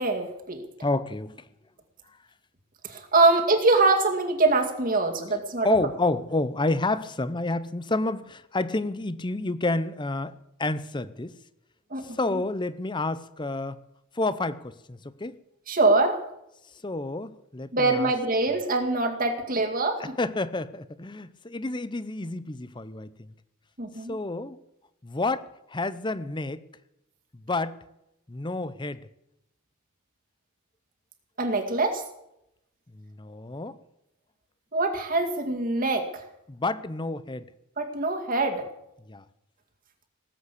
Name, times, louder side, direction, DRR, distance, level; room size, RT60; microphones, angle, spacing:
voice 1, 0.0-0.6 2.8-5.7 11.9-12.4 15.7-16.2 17.7-20.0 23.8-24.1 31.4-32.0 34.7-36.3 37.8-38.7, right 3 dB, 40° right, 2.1 m, -24 dB
voice 2, 0.8-1.3 5.6-10.3 10.6-11.4 12.0-13.8 14.2-15.4 16.8-18.1 20.0-23.3 24.1-24.6 25.0-26.6 27.5-27.8 28.3-29.0 32.9-33.8 36.5-37.5 39.1-39.2, left 2 dB, 20° left, 0.6 m, -29 dB
19.0 x 8.1 x 8.3 m
head